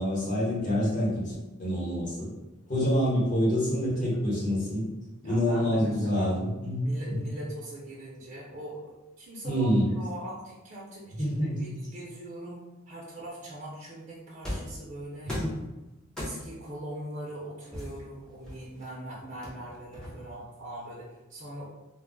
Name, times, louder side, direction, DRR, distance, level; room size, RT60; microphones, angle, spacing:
voice 1, 0.0-1.3 1.6-2.3 2.7-4.9 5.2-7.3 9.4-9.9 11.2-11.7 15.2-15.6, equal, 40° left, -6 dB, 1.0 m, -27 dB
voice 2, 5.2-6.3 6.8-15.3 16.2-21.6, right 1 dB, 40° right, -6 dB, 0.5 m, -41 dB
sound 1, 14.4-14.8 15.3-15.6 16.2-16.6 17.7-18.8 19.4-20.4, left 1 dB, 5° left, 0.6 m, -37 dB
2.2 x 2.0 x 3.7 m, 1.0 s
head